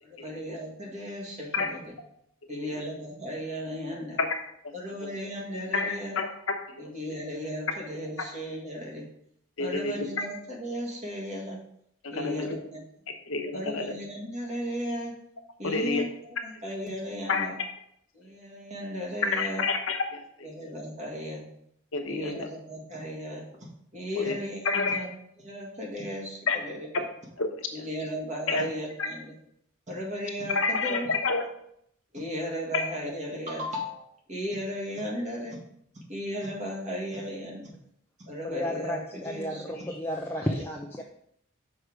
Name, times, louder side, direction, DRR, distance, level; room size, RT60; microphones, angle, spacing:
voice 1, 0.0-1.8 2.5-4.2 4.7-6.2 6.8-9.1 9.6-11.6 12.1-12.8 13.5-15.2 15.6-16.0 16.4-17.6 18.1-19.6 20.4-21.5 22.1-25.1 25.4-26.9 27.7-29.3 29.9-31.1 32.1-35.6 36.1-37.7 38.3-39.7 40.4-40.6, equal, 35° right, -1 dB, 1.7 m, -35 dB
voice 2, 2.5-2.8 4.2-4.3 4.6-4.7 5.0-5.1 5.7-6.3 6.7-6.9 9.6-10.2 12.0-12.6 13.3-13.9 15.6-16.0 17.3-17.7 19.2-20.5 21.9-22.5 24.1-24.3 24.6-25.0 26.5-26.6 27.4-27.8 28.5-28.7 29.0-29.1 30.5-31.4 32.7-32.8, left 4 dB, 70° left, 4 dB, 1.0 m, -29 dB
voice 3, 38.4-41.0, left 1 dB, 10° left, 1 dB, 0.4 m, -32 dB
6.5 x 4.8 x 4.6 m, 0.71 s
head